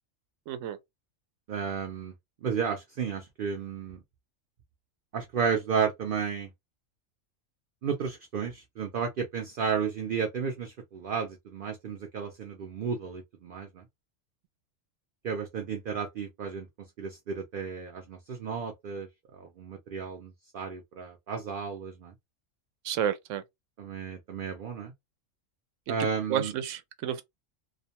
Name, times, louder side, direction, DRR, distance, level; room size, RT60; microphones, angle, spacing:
voice 1, 0.5-0.8 22.8-23.4 25.9-26.0 26.3-27.2, right 9 dB, 75° right, 0.9 m, -31 dB
voice 2, 1.5-2.1 2.4-4.0 5.1-6.5 7.8-13.8 15.2-16.7 17.0-19.1 19.3-22.1 23.8-24.9 25.9-26.5, right 6 dB, 60° right, 0.6 m, -33 dB
2.4 x 2.1 x 2.8 m
omnidirectional pair, 1.3 m